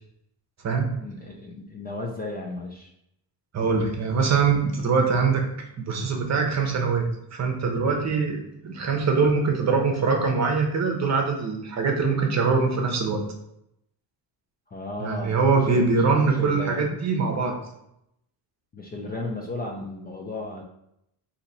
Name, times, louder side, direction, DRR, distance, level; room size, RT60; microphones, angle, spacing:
voice 1, 0.9-2.9 14.7-15.9 16.2-16.9 18.7-20.6, left 2 dB, 20° left, -1 dB, 0.4 m, -34 dB
voice 2, 3.5-5.4 5.8-13.2 15.0-17.6, right 4 dB, 40° right, 2 dB, 0.8 m, -23 dB
3.9 x 2.8 x 4.1 m, 0.79 s
cardioid pair, 130°, 44 cm